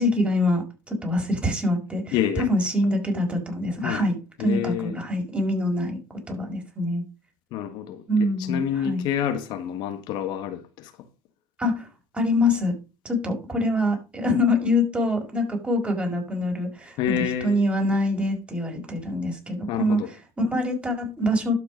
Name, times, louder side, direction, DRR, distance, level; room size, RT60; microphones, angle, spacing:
voice 1, 0.0-6.0 6.3-7.0 8.1-9.0 11.6-11.9 12.1-12.7 13.0-21.6, left 1 dB, 15° right, 5.3 m, -25 dB
voice 2, 2.1-2.5 3.8-4.1 4.4-5.0 7.5-10.9 17.0-17.6 19.7-20.1, left 9 dB, 65° left, 1.6 m, -28 dB
12.0 x 5.9 x 5.2 m
supercardioid pair, 95°, 8 cm